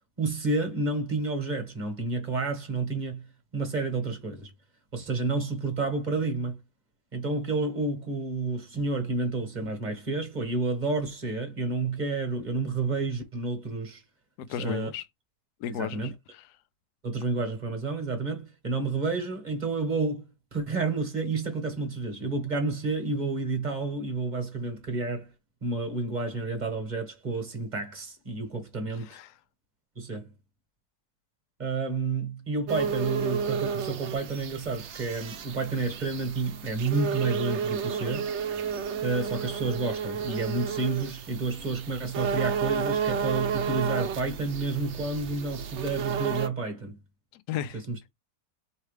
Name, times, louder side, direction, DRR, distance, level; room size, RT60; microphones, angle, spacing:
voice 1, 0.2-3.3 3.5-4.5 4.9-6.6 7.1-14.0 14.6-14.9 15.7-16.1 17.0-25.3 25.6-29.2 30.0-30.3 31.6-38.3 39.0-47.0 47.9-48.0, right 3 dB, 30° right, 1.3 m, -30 dB
voice 2, 14.4-15.0 15.6-16.5 28.9-29.4 47.3-47.8, left 10 dB, 75° left, 1.1 m, -35 dB
sound 1, 32.7-46.5, right 6 dB, 65° right, 0.7 m, -32 dB
4.5 x 3.2 x 3.2 m
omnidirectional pair, 1.9 m